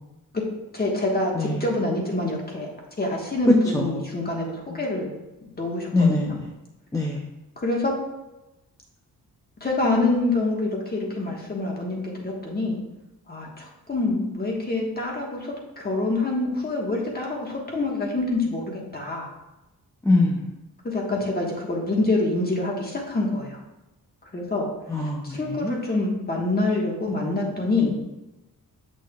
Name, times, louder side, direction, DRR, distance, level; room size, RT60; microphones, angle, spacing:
voice 1, 0.7-2.7 3.0-5.1 5.4-6.1 7.6-7.9 9.6-12.8 13.3-19.3 20.8-23.6 24.3-24.7 25.2-27.9, left 2 dB, 25° left, -1 dB, 1.5 m, -26 dB
voice 2, 5.9-6.4 6.9-7.2 20.0-20.4 24.9-25.7, left 2 dB, 10° left, -1 dB, 0.6 m, -23 dB
8.3 x 6.1 x 2.4 m, 0.98 s
wide cardioid pair, 135°, 35 cm